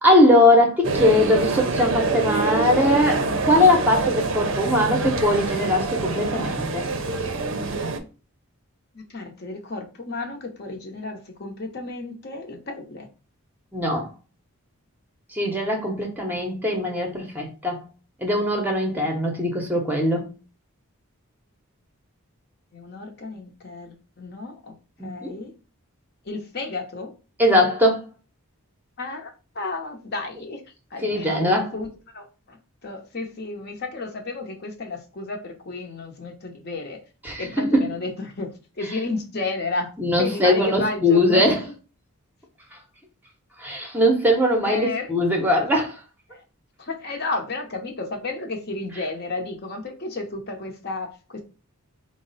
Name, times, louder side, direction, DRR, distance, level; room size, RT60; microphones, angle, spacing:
voice 1, 0.0-6.9 13.7-14.1 15.3-17.8 18.2-20.3 25.0-25.3 27.4-28.0 31.0-31.7 37.2-37.9 40.0-41.6 43.6-46.0, left 1 dB, 10° right, 0.7 m, -20 dB
sound 1, 0.8-8.0, right 3 dB, 55° right, 0.5 m, -25 dB
voice 2, 8.9-13.1 22.7-24.8 25.0-25.5 26.2-27.1 29.0-29.3 29.5-30.6 30.9-31.9 32.1-32.6 32.8-37.0 37.4-39.9 40.2-41.5 44.6-45.1 46.3-46.4 46.8-51.4, left 3 dB, 45° left, 0.7 m, -32 dB
4.6 x 2.0 x 3.9 m
head